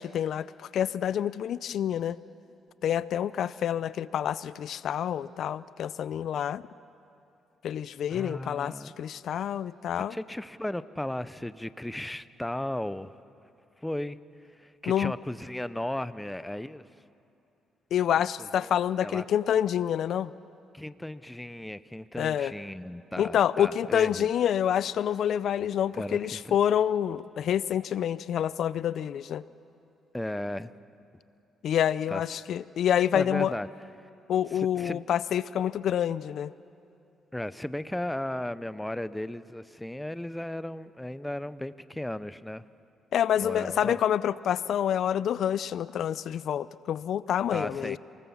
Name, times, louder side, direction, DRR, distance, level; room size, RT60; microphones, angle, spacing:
voice 1, 0.0-2.2 2.8-6.6 7.6-10.1 14.9-15.1 17.9-20.3 22.2-22.5 23.2-29.4 31.6-33.5 34.3-36.5 43.1-48.0, left 9 dB, 70° left, 17 dB, 0.5 m, -27 dB
voice 2, 8.1-8.9 10.1-13.2 13.8-14.2 14.6-16.8 18.2-18.7 19.0-19.2 20.7-24.3 25.9-26.6 30.1-30.7 32.1-32.4 33.1-33.7 34.0-34.1 34.5-35.1 37.3-42.6 43.4-44.0 47.5-48.0, left 1 dB, 5° left, 15 dB, 0.6 m, -35 dB
28.0 x 20.0 x 7.2 m, 2.7 s
cardioid pair, 90°, 0 cm